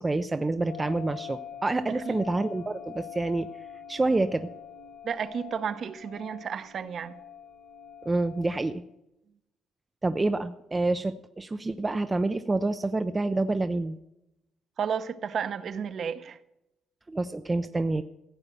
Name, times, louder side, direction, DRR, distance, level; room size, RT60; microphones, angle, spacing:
voice 1, 0.0-3.5 3.9-4.5 8.1-8.8 10.0-14.0 17.1-18.0, right 2 dB, 15° right, 0.5 m, -27 dB
sound 1, 0.7-8.7, left 8 dB, 70° left, 2.3 m, -44 dB
voice 2, 1.9-2.3 5.0-7.2 14.8-16.4, right 7 dB, 45° right, 0.8 m, -32 dB
15.5 x 8.7 x 6.8 m
cardioid pair, 155°, 0 cm